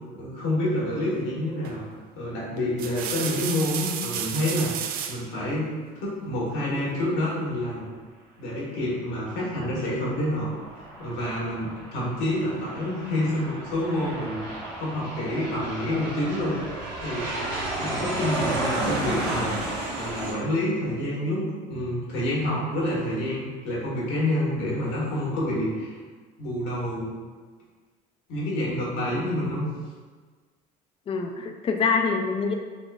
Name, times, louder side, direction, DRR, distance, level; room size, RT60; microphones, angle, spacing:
voice 1, 0.1-1.8 2.1-7.8 8.4-10.5 10.7-17.5 17.8-19.7 20.0-26.0 26.4-27.1 28.3-29.7, left 1 dB, 75° left, -6 dB, 1.4 m, -28 dB
sound 1, 1.6-1.9 2.6-5.3 6.7-7.4, right 8 dB, 55° right, 0.4 m, -33 dB
Aircraft, 10.1-20.3, right 2 dB, 75° right, 1.1 m, -32 dB
voice 2, 29.2-29.5 31.1-32.5, left 5 dB, 30° left, 4 dB, 0.4 m, -26 dB
4.2 x 2.9 x 2.3 m, 1.5 s
supercardioid pair, 95°, 18 cm